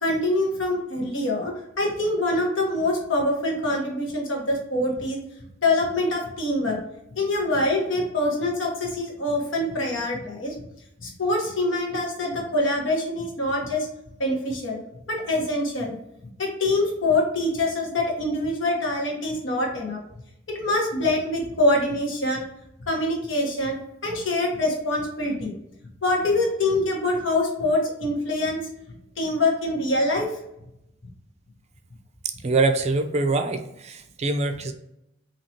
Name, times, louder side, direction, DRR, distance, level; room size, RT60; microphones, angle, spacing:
voice 1, 0.0-5.2 5.6-6.8 7.2-10.5 11.0-13.9 14.2-14.8 15.1-15.9 16.4-20.0 20.5-22.5 22.9-23.8 24.0-25.5 26.0-28.6 29.2-30.3, left 1 dB, 80° left, -1 dB, 1.3 m, -24 dB
voice 2, 32.2-34.7, right 3 dB, 35° right, 8 dB, 0.4 m, -24 dB
4.3 x 2.9 x 2.8 m, 0.82 s
head